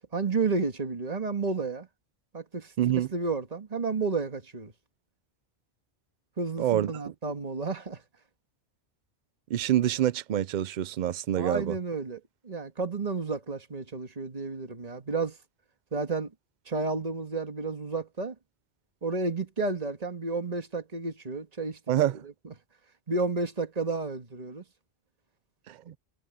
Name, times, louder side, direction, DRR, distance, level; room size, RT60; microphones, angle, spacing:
voice 1, 0.1-1.9 2.3-4.7 6.4-8.0 11.4-12.2 12.4-15.4 15.9-16.3 16.7-18.4 19.0-21.8 23.1-24.6, right 3 dB, 35° right, 1.8 m, -31 dB
voice 2, 2.8-3.1 6.6-6.9 9.5-11.8 21.9-22.2 25.7-26.0, right 12 dB, 55° right, 0.6 m, -26 dB
omnidirectional pair, 1.1 m